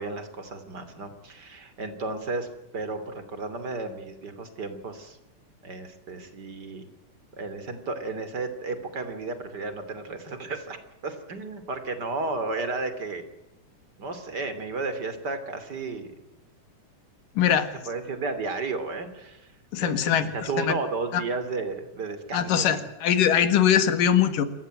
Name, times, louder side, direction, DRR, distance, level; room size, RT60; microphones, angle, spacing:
voice 1, 0.0-2.5 2.7-5.2 5.6-6.9 7.3-13.3 14.0-16.1 17.4-17.5 17.9-19.5 19.8-22.9, right 3 dB, 30° right, 10 dB, 3.2 m, -33 dB
voice 2, 17.4-17.7 19.7-20.7 21.1-21.2 22.3-24.5, left 9 dB, 90° left, 11 dB, 3.4 m, -22 dB
27.5 x 15.5 x 9.0 m, 0.97 s
omnidirectional pair, 3.7 m